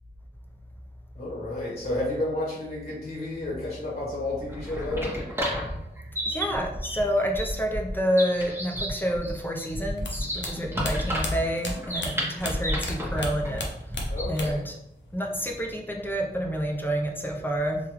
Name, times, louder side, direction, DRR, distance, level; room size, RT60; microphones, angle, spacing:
voice 1, 1.1-5.2 14.1-14.6, left 1 dB, 35° left, -5 dB, 1.1 m, -31 dB
sound 1, 4.4-14.6, equal, 15° right, 1.0 m, -32 dB
voice 2, 6.2-13.6 14.3-14.8 15.1-17.8, equal, 10° left, 0 dB, 0.5 m, -28 dB
sound 2, 10.0-12.9 13.2-14.7 15.0-15.7, left 2 dB, 90° left, 0.6 m, -34 dB
3.4 x 2.3 x 3.0 m, 0.86 s
wide cardioid pair, 80°, 18 cm